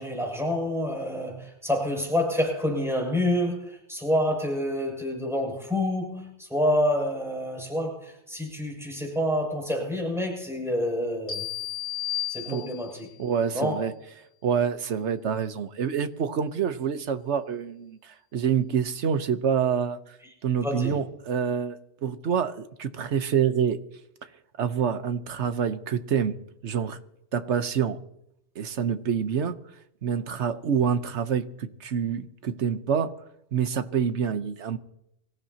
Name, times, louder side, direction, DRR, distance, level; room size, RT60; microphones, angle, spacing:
voice 1, 0.0-11.5 12.3-13.1 13.5-13.8 20.2-20.3 20.6-21.0, left 1 dB, ahead, -1 dB, 6.9 m, -28 dB
sound 1, 11.3-13.1, left 12 dB, 45° left, 2.7 m, -33 dB
voice 2, 13.2-13.9 14.4-20.0 20.4-23.8 24.6-26.3 26.6-27.0 27.3-28.0 28.6-29.6 30.0-33.1 33.5-34.8, right 7 dB, 80° right, 11 dB, 1.2 m, -27 dB
25.0 x 15.5 x 2.9 m, 0.81 s
omnidirectional pair, 1.2 m